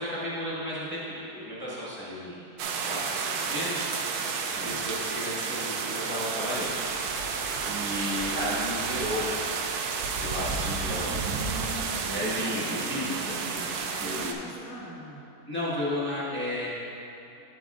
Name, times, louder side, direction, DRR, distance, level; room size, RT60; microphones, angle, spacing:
voice 1, 0.0-4.1 4.6-6.7 7.1-7.3 7.7-9.4 10.2-11.1 12.1-14.3 15.5-16.7, left 1 dB, 10° left, -8 dB, 1.2 m, -33 dB
sound 1, 2.6-14.3, right 5 dB, 75° right, 1.1 m, -31 dB
voice 2, 4.4-4.9 7.5-8.0 10.6-12.8 13.2-15.3, right 1 dB, 10° right, -9 dB, 1.1 m, -42 dB
9.5 x 8.7 x 2.4 m, 2.8 s
omnidirectional pair, 1.7 m